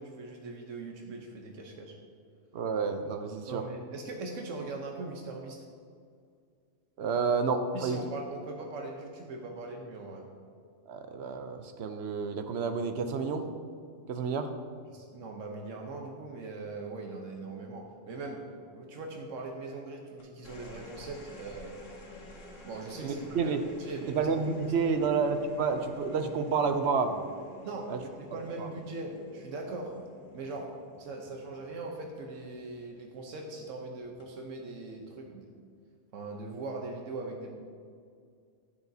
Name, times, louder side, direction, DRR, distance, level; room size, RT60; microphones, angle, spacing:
voice 1, 0.0-2.0 3.5-5.6 7.7-10.3 14.9-18.4 18.7-21.7 22.6-24.3 24.8-25.0 27.6-29.9 30.3-30.7 31.0-35.5 36.1-37.5, right 3 dB, 90° right, 1 dB, 1.2 m, -40 dB
voice 2, 2.5-3.6 7.0-8.0 10.9-13.5 14.1-14.5 23.0-23.6 24.1-27.2 27.9-28.0 28.6-28.7, right 5 dB, 65° right, 8 dB, 0.8 m, -30 dB
sound 1, 20.2-32.8 34.0-34.5, left 1 dB, 90° left, 1.6 m, -50 dB
10.5 x 8.9 x 2.7 m, 2.2 s
omnidirectional pair, 1.3 m